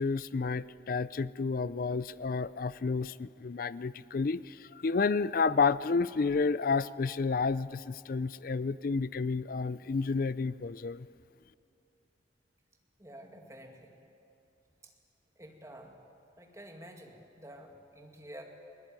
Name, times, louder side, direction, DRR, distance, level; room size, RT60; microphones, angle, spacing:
voice 1, 0.0-11.1, left 4 dB, 50° left, 18 dB, 0.4 m, -30 dB
voice 2, 13.0-13.9 14.8-14.9 15.4-16.0 16.4-18.4, right 1 dB, 15° right, 2 dB, 2.2 m, -49 dB
21.0 x 17.5 x 9.1 m, 2.7 s
head